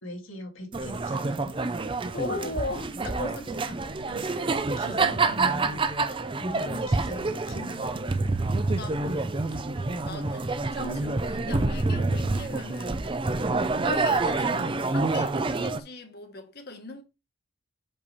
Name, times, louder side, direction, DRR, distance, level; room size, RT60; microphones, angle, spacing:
voice 1, 0.0-1.6 4.1-5.9 6.4-8.0, left 1 dB, 70° left, 2.0 m, -41 dB
sound 1, 0.7-15.8, right 3 dB, 25° right, 0.5 m, -27 dB
voice 2, 2.1-3.8 5.2-5.4 8.6-9.7 10.0-13.2 13.8-17.0, left 2 dB, 50° left, 1.6 m, -38 dB
6.8 x 5.5 x 4.1 m
head